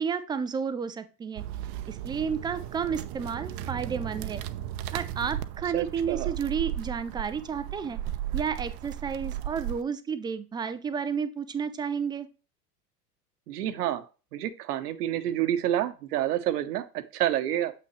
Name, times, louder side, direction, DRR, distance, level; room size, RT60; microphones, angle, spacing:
voice 1, 0.0-1.4 1.9-4.4 4.9-8.0 8.3-12.3, right 6 dB, 10° right, 12 dB, 0.3 m, -31 dB
sound 1, 1.4-9.8, right 12 dB, 45° right, 0.6 m, -35 dB
voice 2, 5.7-6.3 13.5-14.0 14.3-17.7, right 12 dB, 75° right, 12 dB, 1.0 m, -28 dB
7.8 x 5.8 x 3.1 m, 0.33 s
hypercardioid pair, 90°, 47 cm